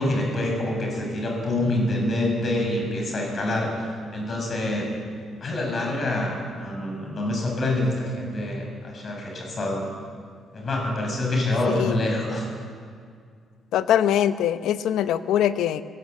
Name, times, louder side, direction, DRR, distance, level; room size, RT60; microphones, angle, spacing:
voice 1, 0.0-3.7 4.1-4.9 5.4-9.8 10.5-12.5, left 1 dB, 45° left, 0 dB, 7.5 m, -26 dB
voice 2, 11.7-12.0 13.7-15.8, left 10 dB, 80° left, 12 dB, 0.8 m, -22 dB
20.5 x 15.5 x 8.3 m, 2.2 s
cardioid pair, 80°, 0 cm